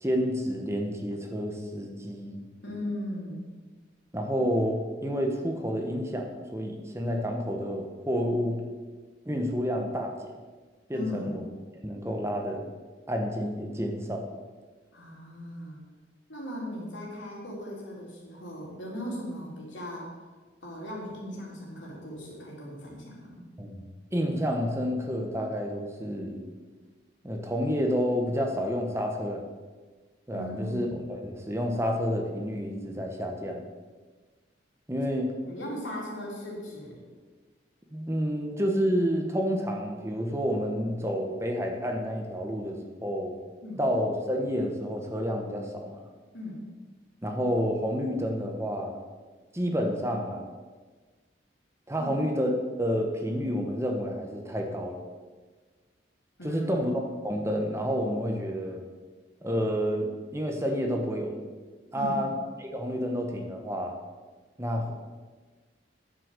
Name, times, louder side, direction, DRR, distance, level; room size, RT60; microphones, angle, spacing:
voice 1, 0.0-2.4 4.1-8.6 9.2-10.3 10.9-11.5 11.8-12.7 13.1-14.2 23.6-23.8 24.1-26.5 27.2-29.4 30.3-33.6 34.9-35.3 37.9-43.4 43.8-46.0 47.2-48.9 49.5-50.5 51.9-55.0 56.4-56.9 57.2-58.8 59.4-61.4 61.9-62.3 62.6-64.0 64.6-64.9, equal, 15° right, 2 dB, 1.2 m, -29 dB
voice 2, 2.6-3.5 10.9-11.4 14.9-15.8 16.3-20.1 20.6-23.5 30.3-30.9 35.4-37.0 43.6-43.9 46.3-46.6 52.0-52.1 56.4-56.7 61.9-62.1, left 1 dB, 80° left, -3 dB, 3.7 m, -38 dB
9.9 x 7.7 x 6.7 m, 1.4 s
head